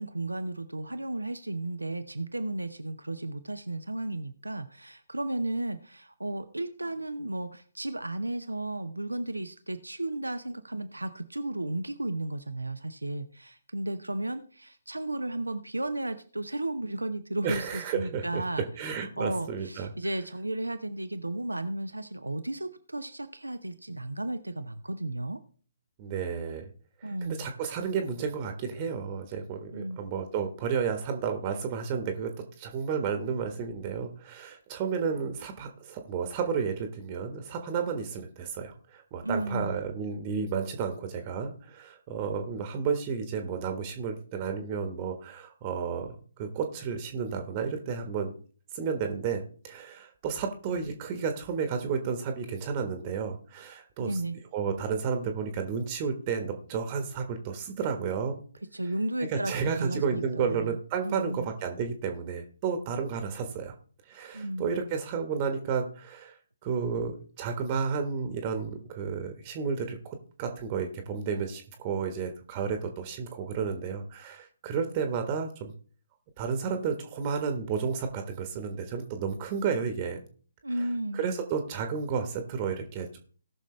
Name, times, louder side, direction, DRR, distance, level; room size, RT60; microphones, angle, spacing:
voice 1, 0.0-18.6 19.2-25.4 27.0-27.5 29.7-30.0 39.2-39.7 54.0-54.4 58.7-60.8 61.0-61.5 64.3-64.7 80.6-81.2, right 1 dB, 80° right, 10 dB, 0.8 m, -34 dB
voice 2, 17.4-18.4 18.8-19.9 26.0-26.7 27.0-32.3 32.6-48.3 48.7-54.2 54.5-58.4 59.3-63.7 64.1-66.3 66.6-70.0 70.4-75.7 76.4-80.2 81.1-83.2, right 6 dB, 30° right, 6 dB, 1.4 m, -32 dB
18.5 x 6.2 x 3.3 m, 0.42 s
figure-of-eight pair, 135°, 0 cm